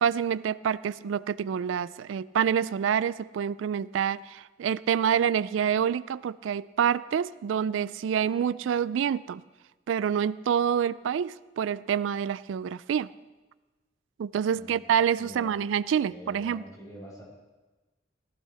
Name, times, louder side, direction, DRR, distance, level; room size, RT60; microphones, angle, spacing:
voice 1, 0.0-9.4 9.9-13.1 14.2-16.6, right 8 dB, 90° right, 18 dB, 0.3 m, -27 dB
voice 2, 14.5-14.9 15.2-15.5 16.0-17.2, equal, 20° left, -4 dB, 5.8 m, -45 dB
18.0 x 15.0 x 3.4 m, 1.2 s
head